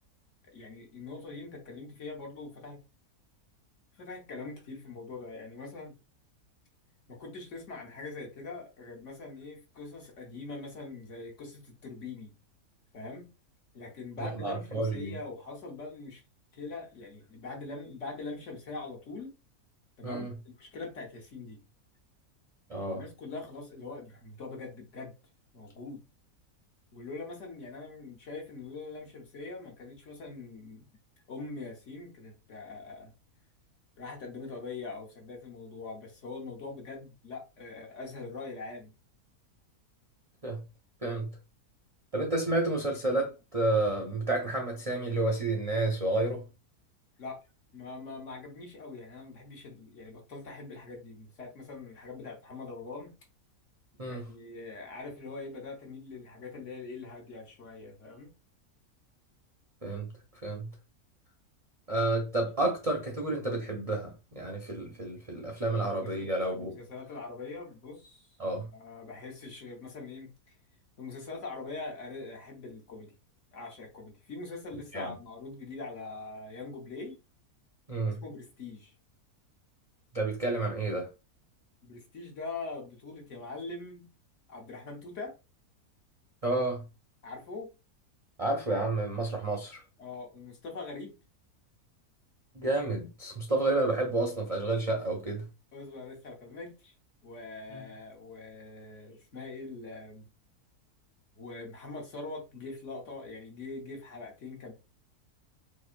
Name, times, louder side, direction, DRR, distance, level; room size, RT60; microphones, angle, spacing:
voice 1, 0.5-2.8 3.9-5.9 7.1-12.3 12.9-13.3 13.7-16.2 16.5-19.3 20.0-21.6 22.8-25.1 25.5-26.0 26.9-30.9 31.3-33.1 34.0-38.9 47.2-47.4 47.7-53.1 54.0-58.3 62.1-62.7 65.7-70.5 71.0-73.1 73.5-77.2 78.1-78.9 81.8-84.1 84.5-85.3 87.2-87.7 90.0-91.2 95.7-96.9 97.2-100.3 101.4-104.7, left 3 dB, 55° left, 1.2 m, -43 dB
voice 2, 14.2-15.2 20.0-20.3 22.7-23.0 40.4-40.6 41.0-41.3 42.1-46.4 54.0-54.3 59.8-60.1 60.4-60.7 61.9-66.8 68.4-68.7 74.9-75.1 77.9-78.2 80.1-81.1 86.4-86.8 88.4-89.8 92.5-95.5 97.7-97.8, right 2 dB, 40° right, 0.5 m, -30 dB
4.1 x 2.7 x 2.5 m
omnidirectional pair, 1.6 m